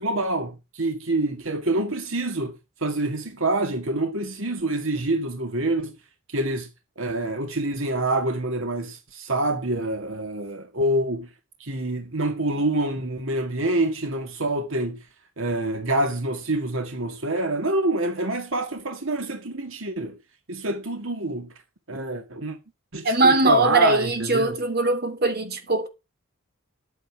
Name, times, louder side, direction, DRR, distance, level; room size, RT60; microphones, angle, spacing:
voice 1, 0.0-2.5 2.8-5.9 6.3-6.7 7.0-11.3 11.6-15.0 15.4-20.2 20.5-21.5 21.9-22.6 22.9-24.6, right 2 dB, 65° right, 2.1 m, -26 dB
voice 2, 23.0-25.9, right 2 dB, 45° right, 3.0 m, -21 dB
11.0 x 9.2 x 6.1 m
head